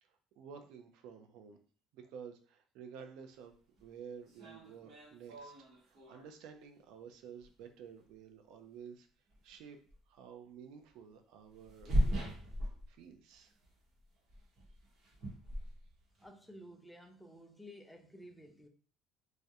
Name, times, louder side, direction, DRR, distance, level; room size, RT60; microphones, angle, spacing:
voice 1, 0.0-1.6 1.9-3.5 3.8-5.5 5.8-9.1 9.4-9.8 10.1-12.3 12.9-13.5, right 7 dB, 75° right, 6 dB, 0.3 m, -52 dB
sound 1, 3.8-3.9 4.3-6.3 7.4-7.5 9.3-9.5 9.9-10.0 11.5-13.4 13.6-13.9 14.3-16.3, equal, 50° right, 0.8 m, -37 dB
voice 2, 16.2-18.7, equal, 5° left, 4 dB, 0.3 m, -53 dB
2.3 x 2.0 x 2.7 m, 0.42 s
cardioid pair, 140°, 0 cm